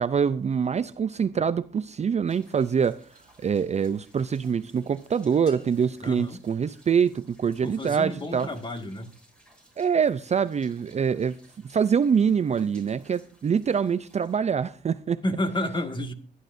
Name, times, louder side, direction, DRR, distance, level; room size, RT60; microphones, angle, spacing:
voice 1, 0.0-3.0 3.4-8.5 9.8-15.2, right 7 dB, 35° right, 0.5 m, -25 dB
sound 1, 2.3-14.4, right 1 dB, 5° left, 6.6 m, -59 dB
sound 2, 5.5-7.4, left 2 dB, 70° left, 5.0 m, -56 dB
voice 2, 6.0-6.4 7.6-9.1 15.2-16.1, left 1 dB, 25° left, 2.0 m, -30 dB
22.0 x 11.0 x 2.7 m
cardioid pair, 90°, 20 cm